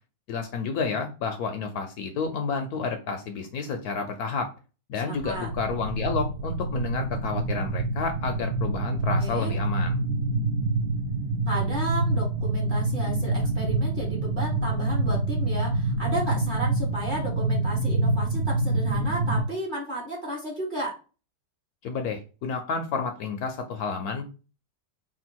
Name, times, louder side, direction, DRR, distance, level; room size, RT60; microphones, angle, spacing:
voice 1, 0.3-4.5 4.9-10.0 21.8-24.3, left 5 dB, 70° left, 5 dB, 1.0 m, -30 dB
sound 1, 5.2-19.4, right 2 dB, 60° right, 0.6 m, -26 dB
voice 2, 9.2-9.5 11.5-21.0, right 1 dB, 35° right, -3 dB, 1.1 m, -33 dB
3.7 x 2.4 x 4.3 m, 0.33 s
omnidirectional pair, 1.9 m